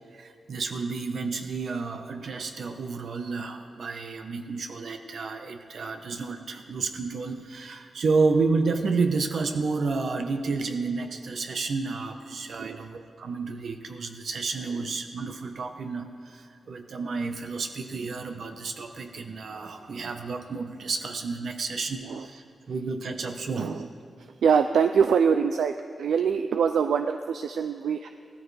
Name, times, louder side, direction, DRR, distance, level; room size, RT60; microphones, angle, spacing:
voice 1, 0.1-23.8, right 4 dB, 70° right, 5 dB, 1.1 m, -30 dB
voice 2, 24.4-25.7 26.0-28.1, right 6 dB, 85° right, 8 dB, 0.4 m, -23 dB
17.5 x 14.0 x 3.4 m, 2.6 s
cardioid pair, 75°, 0 cm